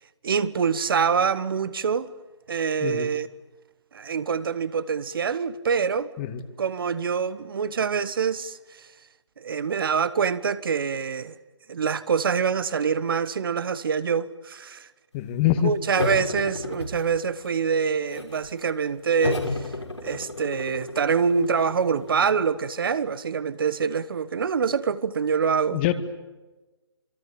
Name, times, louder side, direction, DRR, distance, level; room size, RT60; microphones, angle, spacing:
voice 1, 0.2-2.1 2.5-3.3 3.9-6.1 6.6-8.9 9.4-11.4 11.7-14.9 15.6-19.7 20.0-25.9, right 6 dB, 55° right, 1.3 m, -25 dB
voice 2, 15.1-15.7 25.7-25.9, left 12 dB, 25° left, 1.9 m, -24 dB
sound 1, 15.9-17.5 17.8-18.5 19.2-22.5, left 2 dB, 90° left, 5.8 m, -33 dB
26.5 x 24.5 x 8.8 m
figure-of-eight pair, 145°, 14 cm